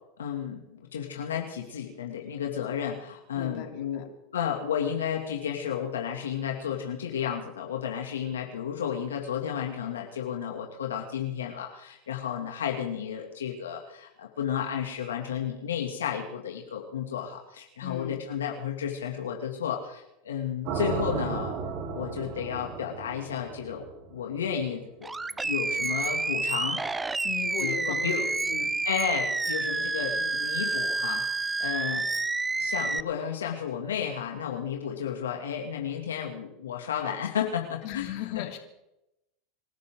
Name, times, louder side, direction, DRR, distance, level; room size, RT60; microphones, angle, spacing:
voice 1, 0.2-4.1 4.3-21.5 21.9-25.1 25.4-26.8 27.6-28.2 28.8-32.2 32.6-38.1 38.4-38.5, left 8 dB, 90° left, 1 dB, 2.6 m, -32 dB
voice 2, 3.3-4.1 17.8-18.2 27.2-28.8 37.8-38.6, left 11 dB, 60° left, 4 dB, 3.0 m, -37 dB
sound 1, 20.7-24.7, right 5 dB, 55° right, 4.6 m, -35 dB
Animal, 25.0-33.0, right 3 dB, 15° right, 0.5 m, -29 dB
27.5 x 13.0 x 3.9 m, 0.87 s
hypercardioid pair, 100°, 0 cm